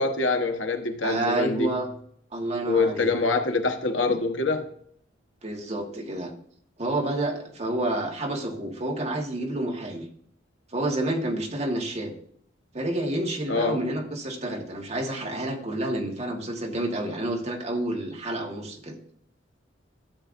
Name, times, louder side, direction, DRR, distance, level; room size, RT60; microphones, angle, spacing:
voice 1, 0.0-1.7 2.6-4.7 13.5-13.8, left 3 dB, 85° left, 1.1 m, -25 dB
voice 2, 1.0-1.9 2.3-3.1 5.4-6.3 6.8-10.0 10.7-12.1 12.7-19.0, right 1 dB, 35° right, 1.5 m, -29 dB
13.0 x 7.7 x 2.6 m
head